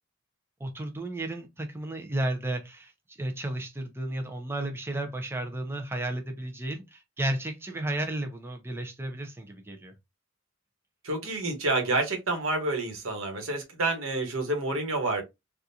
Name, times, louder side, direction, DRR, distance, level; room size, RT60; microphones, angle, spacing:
voice 1, 0.6-9.9, right 1 dB, 10° right, 0.5 m, -33 dB
voice 2, 11.0-15.2, right 2 dB, 85° right, 1.3 m, -28 dB
3.6 x 2.4 x 2.7 m
head